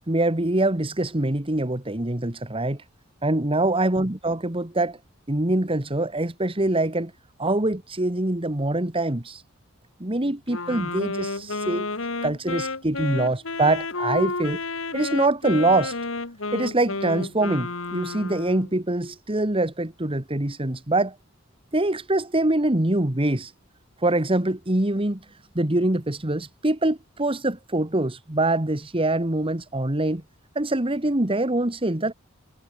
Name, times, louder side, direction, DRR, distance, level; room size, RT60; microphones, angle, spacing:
voice 1, 0.1-2.8 3.2-5.0 5.3-7.1 7.4-9.4 10.0-11.9 12.2-14.6 14.9-16.0 16.5-21.2 21.7-23.5 24.0-30.2 30.6-32.1, right 2 dB, 25° right, 1.8 m, -24 dB
Wind instrument woodwind instrument, 10.5-18.7, left 3 dB, 75° left, 2.5 m, -31 dB
head